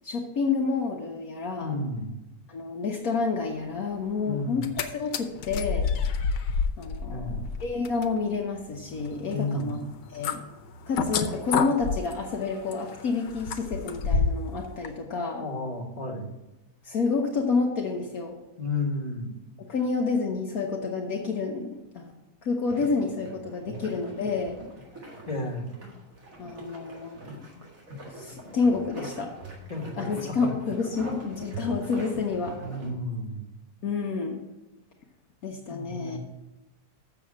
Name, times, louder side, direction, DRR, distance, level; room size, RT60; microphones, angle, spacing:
voice 1, 0.0-1.8 2.5-4.7 4.9-5.9 6.8-9.8 10.1-10.4 10.9-15.5 16.8-18.4 19.7-22.1 22.4-24.6 26.4-27.6 28.1-29.3 30.0-32.6 33.8-34.4 35.4-36.2, left 4 dB, 60° left, 0 dB, 1.4 m, -29 dB
voice 2, 1.6-2.1 4.2-4.6 7.1-7.4 9.3-9.8 15.4-16.3 18.6-19.3 23.7-23.8 25.3-25.7 29.7-30.5 32.6-33.4 35.7-36.2, left 2 dB, 25° left, 1 dB, 1.7 m, -32 dB
sound 1, 4.5-4.8 5.1-14.5 14.8-14.9, left 5 dB, 85° left, 1.4 m, -30 dB
sound 2, 22.6-32.9, right 1 dB, 55° right, 2.2 m, -42 dB
6.9 x 6.9 x 7.4 m, 1.0 s
omnidirectional pair, 1.8 m